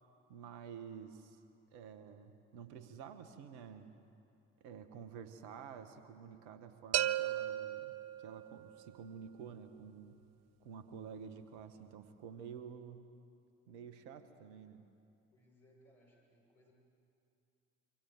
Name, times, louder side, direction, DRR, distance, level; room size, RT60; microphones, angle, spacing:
voice 1, 0.3-1.4 1.7-3.9 4.6-8.0 8.2-10.2 10.6-13.0 13.7-14.8, right 7 dB, 70° right, 10 dB, 1.5 m, -50 dB
sound 1, 6.9-8.8, right 12 dB, 45° right, 0.7 m, -35 dB
voice 2, 15.3-16.7, equal, 70° left, -3 dB, 6.9 m, -66 dB
26.5 x 24.5 x 7.7 m, 2.6 s
figure-of-eight pair, 50°, 36 cm